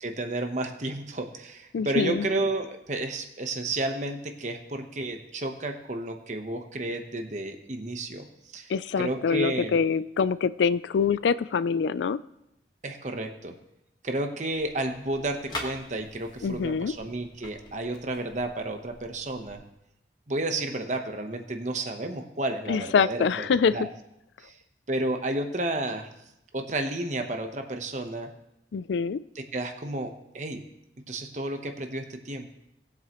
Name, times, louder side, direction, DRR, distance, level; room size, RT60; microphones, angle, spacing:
voice 1, 0.0-8.3 8.5-9.7 12.8-13.5 14.0-19.6 20.3-23.9 24.4-24.6 24.9-26.1 26.5-28.3 29.3-30.6 31.1-32.5, right 2 dB, 40° right, 5 dB, 1.1 m, -32 dB
voice 2, 1.7-2.3 8.7-12.2 16.4-16.9 22.7-23.8 28.7-29.2, left 5 dB, 80° left, 16 dB, 0.4 m, -25 dB
sound 1, 14.5-19.5, left 1 dB, 25° left, 1.5 m, -44 dB
19.0 x 7.7 x 3.1 m, 0.86 s
head